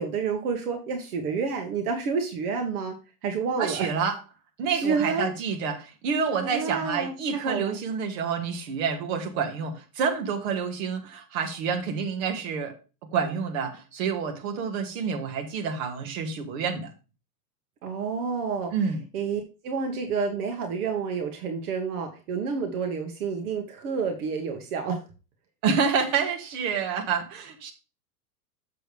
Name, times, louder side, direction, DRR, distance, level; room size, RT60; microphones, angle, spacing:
voice 1, 0.0-3.0 3.2-3.9 4.7-5.3 6.4-7.8 17.8-18.7 19.1-25.0, right 5 dB, 70° right, 4 dB, 1.7 m, -29 dB
voice 2, 3.6-4.2 4.6-12.7 13.1-16.9 18.7-19.0 25.6-27.7, right 6 dB, 50° right, 4 dB, 2.1 m, -28 dB
7.6 x 6.8 x 3.4 m, 0.32 s
supercardioid pair, 160°, 46 cm